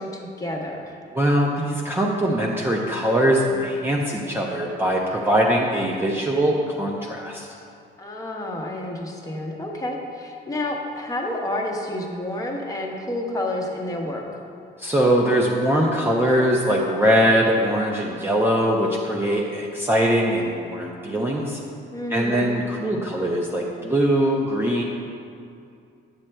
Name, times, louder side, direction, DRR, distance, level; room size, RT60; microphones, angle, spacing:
voice 1, 0.0-1.0 8.0-14.2 21.9-22.4, left 1 dB, 20° left, 0 dB, 0.8 m, -29 dB
voice 2, 1.1-7.5 14.8-21.6 22.1-24.8, equal, 10° right, -2 dB, 0.5 m, -21 dB
9.6 x 7.3 x 2.2 m, 2.5 s
cardioid pair, 140°, 19 cm